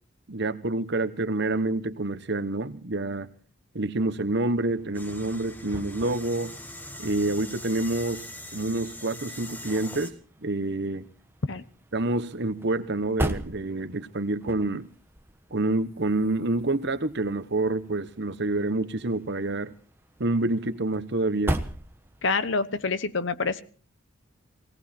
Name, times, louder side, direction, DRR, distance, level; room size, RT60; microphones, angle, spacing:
voice 1, 0.3-3.3 3.7-6.5 7.0-8.2 8.5-10.1 10.4-11.0 11.9-14.9 15.5-19.7 20.2-21.6, right 2 dB, 55° right, 11 dB, 1.1 m, -27 dB
sound 1, 4.4-22.5, right 1 dB, 10° right, 1.1 m, -40 dB
sound 2, 4.9-10.1, left 1 dB, 10° left, 1.2 m, -41 dB
voice 2, 22.2-23.6, left 4 dB, 65° left, 14 dB, 1.0 m, -27 dB
18.0 x 18.0 x 4.4 m, 0.41 s
head